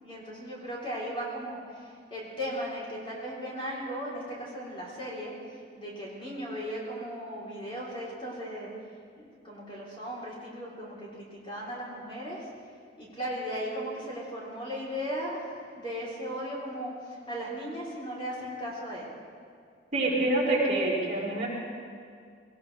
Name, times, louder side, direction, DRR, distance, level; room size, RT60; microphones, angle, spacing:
voice 1, 0.0-8.7 9.2-12.5 13.0-19.1, equal, 30° left, -5 dB, 3.9 m, -37 dB
voice 2, 19.9-21.5, right 2 dB, 40° right, -7 dB, 4.7 m, -26 dB
21.0 x 18.5 x 3.4 m, 2.1 s
head